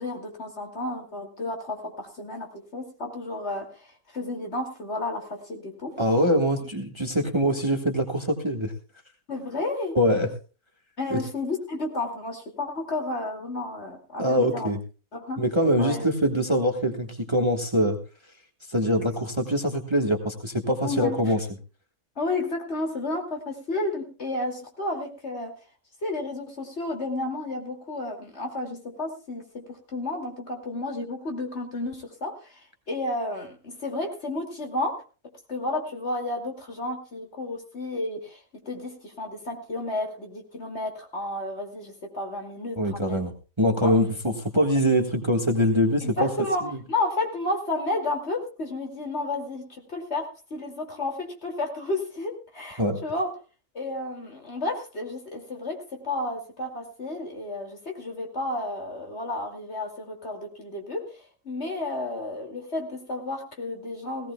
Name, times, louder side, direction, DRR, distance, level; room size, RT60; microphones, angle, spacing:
voice 1, 0.0-6.0 9.3-10.0 11.0-14.7 15.1-15.4 15.8-16.1 20.8-21.3 22.2-25.5 26.0-35.0 35.5-43.3 43.8-43.9 46.0-53.4 53.7-64.3, left 2 dB, 45° left, 2 dB, 2.9 m, -32 dB
voice 2, 6.0-8.7 9.9-10.3 11.1-11.2 14.2-14.8 15.4-18.0 18.7-21.4 42.8-43.3 43.6-44.1 44.4-46.3 52.8-53.0, equal, 20° right, 4 dB, 1.6 m, -23 dB
18.0 x 17.5 x 2.3 m, 0.33 s
omnidirectional pair, 1.5 m